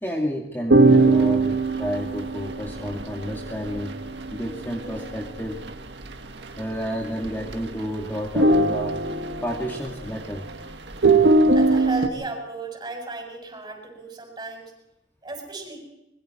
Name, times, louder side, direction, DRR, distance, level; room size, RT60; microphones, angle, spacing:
voice 1, 0.0-4.0 4.3-5.6 6.6-8.9 9.4-10.5, equal, 10° left, -1 dB, 2.4 m, -30 dB
sound 1, 0.7-5.7 6.0-6.1 6.4-6.9 7.2-7.9 8.2-10.5 10.9-12.1, right 2 dB, 70° right, 1.8 m, -20 dB
voice 2, 11.5-14.7 15.2-15.8, right 2 dB, 25° right, 2 dB, 7.0 m, -35 dB
26.0 x 22.0 x 4.5 m, 0.89 s
head